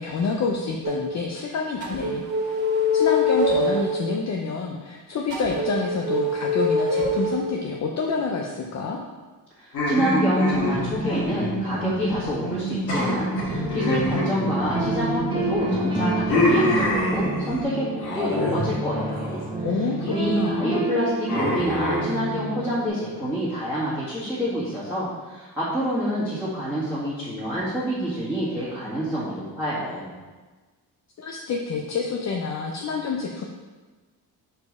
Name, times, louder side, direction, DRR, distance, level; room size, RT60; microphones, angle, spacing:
voice 1, 0.0-2.6 2.9-9.0 19.6-20.8 31.2-33.4, left 4 dB, 45° left, 1 dB, 0.6 m, -28 dB
sound 1, 0.8-1.0 1.8-4.0 5.3-7.5 9.8-17.6, left 1 dB, 55° right, 1.8 m, -26 dB
voice 2, 9.6-19.4 20.0-30.1, equal, 5° left, -12 dB, 1.8 m, -27 dB
sound 2, 9.7-12.2 12.4-12.6 12.9-15.2 15.6-17.6 18.0-18.6 18.9-19.4 19.9-20.3 21.3-22.0, left 1 dB, 80° left, 1.7 m, -26 dB
sound 3, 13.4-22.9, right 2 dB, 15° right, 1.1 m, -30 dB
5.0 x 4.6 x 4.7 m, 1.3 s
cardioid pair, 120°, 38 cm